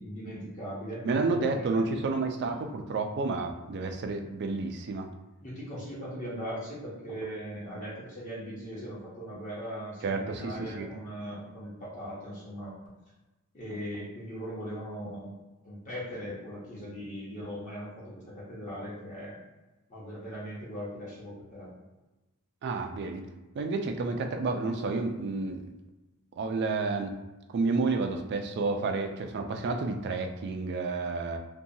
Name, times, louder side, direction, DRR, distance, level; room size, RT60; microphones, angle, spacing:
voice 1, 0.0-1.8 2.4-2.6 5.4-12.7 13.5-15.3 15.6-19.4 19.9-21.7, equal, 35° left, -7 dB, 0.8 m, -39 dB
voice 2, 1.0-5.1 10.0-10.9 22.6-23.2 23.5-25.7 26.4-27.2 27.5-31.4, right 3 dB, 50° right, 6 dB, 0.3 m, -30 dB
2.7 x 2.2 x 2.7 m, 1.1 s
head